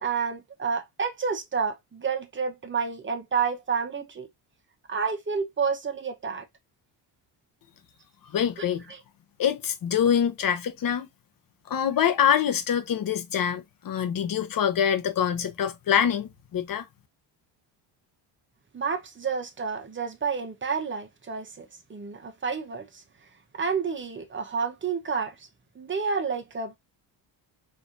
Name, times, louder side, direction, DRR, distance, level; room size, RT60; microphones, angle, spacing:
voice 1, 0.0-4.3 4.9-6.4 8.9-9.0 18.7-23.0 23.5-25.5 25.7-26.8, right 5 dB, 25° right, 1.1 m, -30 dB
voice 2, 8.3-8.8 9.4-11.1 11.7-16.8, left 8 dB, 50° left, 1.0 m, -25 dB
4.4 x 2.8 x 2.6 m
cardioid pair, 90°, 45 cm